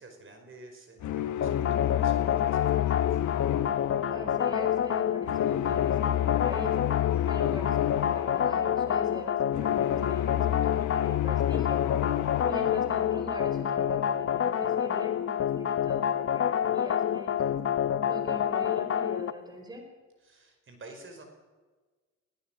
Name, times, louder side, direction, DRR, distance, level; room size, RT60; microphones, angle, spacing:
voice 1, 0.0-1.7 2.0-3.2 7.1-7.3 17.3-17.6 20.2-21.2, right 2 dB, 40° right, 5 dB, 5.0 m, -51 dB
sound 1, 1.0-14.1, left 13 dB, 75° left, 1.1 m, -31 dB
sound 2, 1.4-19.3, left 9 dB, 45° left, 1.0 m, -28 dB
voice 2, 4.1-6.8 7.2-11.8 12.4-17.5 18.0-19.9, equal, 15° right, 5 dB, 4.7 m, -42 dB
20.5 x 17.5 x 7.4 m, 1.3 s
cardioid pair, 90°, 30 cm